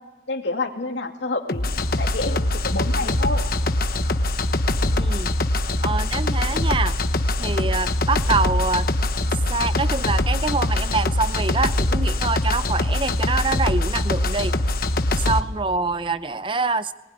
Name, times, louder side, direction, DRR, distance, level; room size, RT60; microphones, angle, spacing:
voice 1, 0.3-3.4, left 2 dB, 80° left, 4 dB, 2.5 m, -28 dB
sound 1, 1.5-15.4, left 1 dB, 55° left, 1.1 m, -22 dB
voice 2, 5.0-5.3 5.8-7.0 7.4-8.9 9.5-14.6 15.2-16.9, right 3 dB, 30° right, 14 dB, 0.7 m, -25 dB
22.5 x 19.5 x 10.0 m, 1.2 s
head